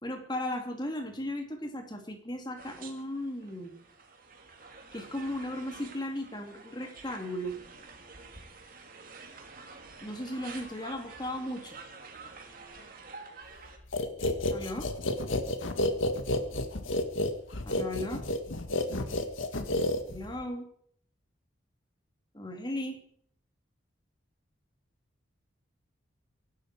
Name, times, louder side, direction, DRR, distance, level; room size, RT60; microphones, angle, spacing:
voice 1, 0.0-3.8 4.9-7.5 10.0-11.8 14.5-14.9 17.7-18.2 20.1-20.7 22.3-23.0, left 1 dB, 20° left, 4 dB, 2.7 m, -36 dB
sound 1, 2.6-13.8, right 4 dB, 45° right, 2.8 m, -49 dB
sound 2, 13.9-20.4, left 2 dB, 85° left, 1.8 m, -30 dB
24.0 x 12.0 x 4.8 m, 0.62 s
head